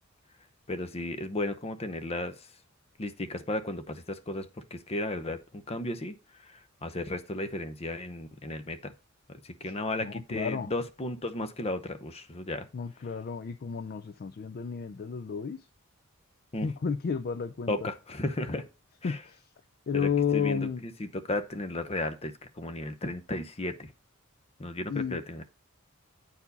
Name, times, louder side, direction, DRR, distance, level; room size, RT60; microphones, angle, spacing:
voice 1, 0.7-2.5 3.0-6.2 6.4-8.9 9.4-12.7 16.5-16.7 17.7-18.6 19.0-19.2 19.9-23.9 24.6-25.4, left 2 dB, 30° left, 0.8 m, -34 dB
voice 2, 10.0-10.7 12.7-15.7 16.6-17.9 19.0-19.5 19.9-20.8 24.9-25.2, left 6 dB, 45° left, 0.4 m, -32 dB
8.5 x 4.6 x 4.0 m
head